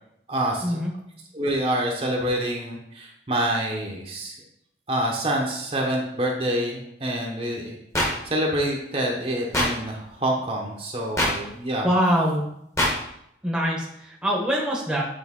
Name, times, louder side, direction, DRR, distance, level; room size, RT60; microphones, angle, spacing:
voice 1, 0.3-0.8 1.3-4.4 4.9-11.9, right 1 dB, 35° right, -1 dB, 0.9 m, -27 dB
sound 1, 7.9-8.1 9.5-9.7 11.2-11.3 12.8-12.9, left 1 dB, 15° left, 1.1 m, -21 dB
voice 2, 11.8-12.4 13.4-15.0, equal, 5° right, -3 dB, 1.0 m, -23 dB
8.2 x 3.4 x 3.7 m, 0.75 s
head